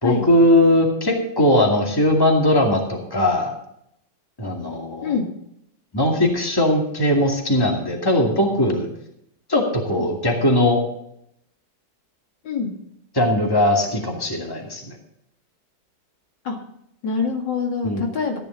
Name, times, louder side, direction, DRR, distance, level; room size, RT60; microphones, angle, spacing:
voice 1, 0.0-3.5 4.4-5.2 5.9-8.9 9.5-10.8 13.1-14.9 17.8-18.0, left 1 dB, 10° left, 0 dB, 2.3 m, -19 dB
voice 2, 17.0-18.4, left 5 dB, 80° left, 2 dB, 2.7 m, -25 dB
14.0 x 10.5 x 4.0 m, 0.76 s
omnidirectional pair, 1.9 m